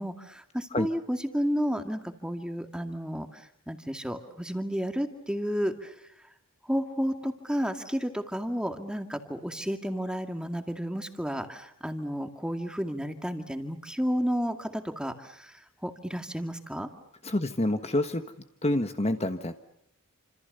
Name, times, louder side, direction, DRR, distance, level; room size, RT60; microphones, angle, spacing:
voice 1, 0.0-6.3 6.6-16.9, equal, 5° right, 6 dB, 2.3 m, -32 dB
voice 2, 17.2-18.2 18.6-19.5, left 1 dB, 30° left, 8 dB, 1.4 m, -27 dB
29.5 x 27.0 x 6.9 m, 0.75 s
head